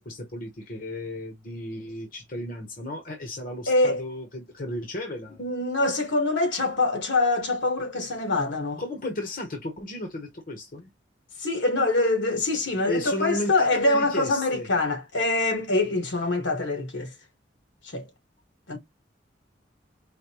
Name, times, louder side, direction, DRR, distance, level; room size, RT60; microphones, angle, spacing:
voice 1, 0.0-5.4 8.8-10.9 12.9-14.7, left 1 dB, 50° left, 1.1 m, -34 dB
voice 2, 3.7-4.0 5.4-8.8 11.4-17.1 17.8-18.0 18.7-18.8, left 2 dB, 70° left, 1.6 m, -24 dB
5.1 x 2.2 x 2.9 m
head